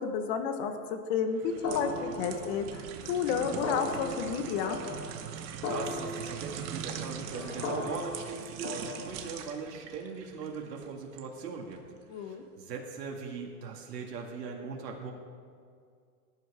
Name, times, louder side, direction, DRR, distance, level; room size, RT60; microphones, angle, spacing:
voice 1, 0.0-4.8 12.1-12.4, left 6 dB, 40° left, 7 dB, 1.4 m, -31 dB
sound 1, 1.3-11.3 11.7-11.9, right 8 dB, 35° right, 1.2 m, -42 dB
sound 2, 1.6-9.4, left 2 dB, 75° left, 3.5 m, -38 dB
voice 2, 5.3-11.8 12.1-15.1, right 5 dB, 85° right, 0 dB, 2.1 m, -40 dB
20.0 x 11.0 x 3.6 m, 2.2 s
hypercardioid pair, 140°, 48 cm